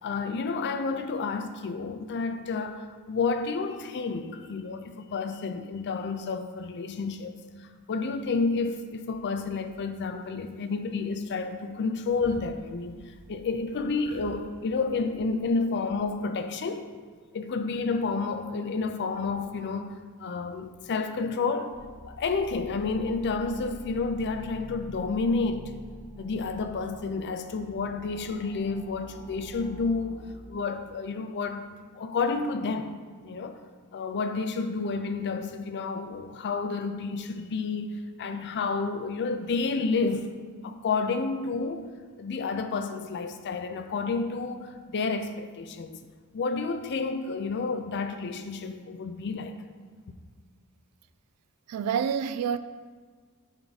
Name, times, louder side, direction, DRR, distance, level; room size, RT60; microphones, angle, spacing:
voice 1, 0.0-7.3 7.6-16.9 17.3-21.8 22.1-25.7 26.2-30.2 30.5-31.7 31.9-32.9 33.2-33.6 33.9-40.3 40.6-41.9 42.2-46.0 46.3-49.6, left 4 dB, 50° left, 0.4 m, -30 dB
sound 1, 9.4-10.1 10.4-11.1 11.4-11.7 12.0-15.5, equal, 25° right, 1.8 m, -51 dB
sound 2, 21.7-30.3, equal, 15° left, 1.0 m, -46 dB
voice 2, 51.7-52.6, right 7 dB, 80° right, 0.3 m, -27 dB
9.0 x 3.6 x 4.0 m
head